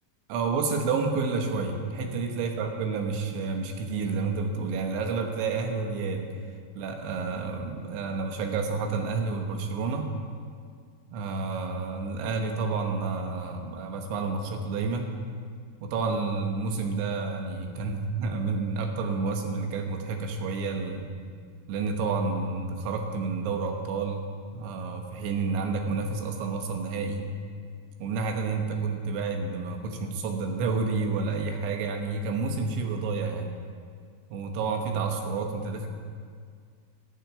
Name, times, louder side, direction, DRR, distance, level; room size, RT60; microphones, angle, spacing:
voice 1, 0.3-6.3 6.8-10.1 11.1-15.2 15.8-21.1 21.7-24.3 24.5-27.3 28.0-33.5 34.3-35.9, right 4 dB, 85° right, 4 dB, 3.7 m, -30 dB
12.0 x 7.9 x 9.2 m, 2.1 s
omnidirectional pair, 5.2 m